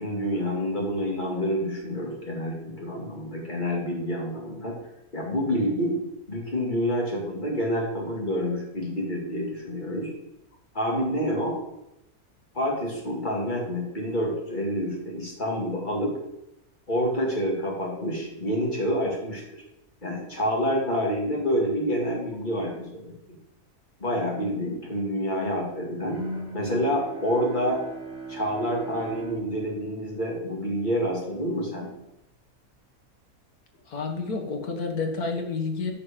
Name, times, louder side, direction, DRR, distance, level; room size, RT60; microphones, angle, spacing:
voice 1, 0.0-4.8 5.1-6.0 6.3-10.1 10.7-11.6 12.5-16.1 16.9-19.4 20.0-23.2 24.0-26.2 26.5-27.8 28.3-31.9, equal, 30° left, -1 dB, 2.5 m, -28 dB
Bowed string instrument, 26.1-31.2, right 2 dB, 40° right, 2.5 m, -38 dB
voice 2, 33.9-35.9, left 4 dB, 75° left, 3 dB, 2.0 m, -29 dB
9.9 x 5.2 x 7.4 m, 0.87 s
omnidirectional pair, 1.6 m